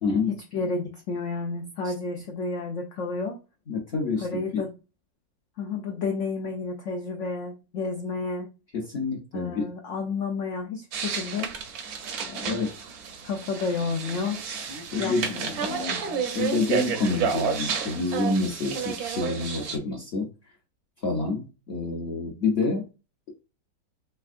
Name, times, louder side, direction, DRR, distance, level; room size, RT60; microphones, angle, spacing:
voice 1, 0.0-0.3 1.8-1.9 3.7-4.3 8.7-9.7 12.5-12.7 14.9-15.3 16.3-20.3 21.0-22.8, left 3 dB, 55° left, -1 dB, 0.7 m, -27 dB
voice 2, 0.5-3.4 4.2-4.7 5.6-8.5 9.3-11.5 12.3-12.7 13.2-14.4 15.0-16.0, left 4 dB, 90° left, 4 dB, 0.6 m, -31 dB
sound 1, 10.9-19.8, right 6 dB, 65° right, 1.0 m, -31 dB
3.5 x 3.4 x 2.4 m, 0.29 s
omnidirectional pair, 2.0 m